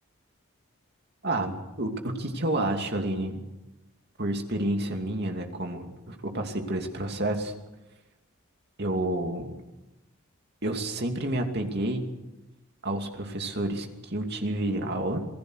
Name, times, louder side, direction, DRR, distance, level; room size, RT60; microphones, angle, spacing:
voice 1, 1.2-3.4 4.2-7.5 8.8-9.6 10.6-12.1 12.8-15.3, right 1 dB, 50° right, 4 dB, 2.7 m, -29 dB
27.5 x 18.5 x 6.5 m, 1.0 s
head